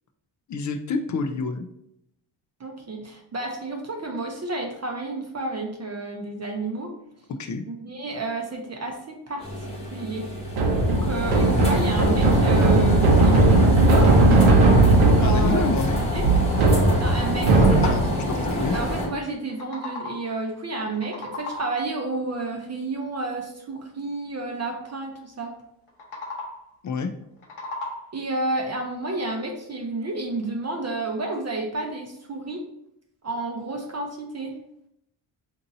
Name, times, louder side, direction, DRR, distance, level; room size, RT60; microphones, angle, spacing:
voice 1, 0.5-1.7 7.4-7.6 15.2-16.0 17.8-18.7 26.8-27.1, left 4 dB, 40° left, 7 dB, 0.4 m, -28 dB
voice 2, 2.6-6.9 7.7-10.3 10.9-14.2 15.1-15.6 16.1-16.3 17.0-17.7 18.5-25.5 28.1-32.6 33.2-34.5, right 2 dB, 30° right, 2 dB, 0.6 m, -31 dB
sound 1, 9.4-19.1, left 1 dB, 15° left, 1.1 m, -28 dB
sound 2, 10.5-18.3, right 2 dB, 70° right, 0.7 m, -18 dB
sound 3, 19.3-20.4 20.8-21.9 25.9-26.8 27.2-28.3, left 2 dB, 75° left, 0.9 m, -37 dB
2.7 x 2.6 x 3.9 m, 0.77 s
cardioid pair, 70°, 50 cm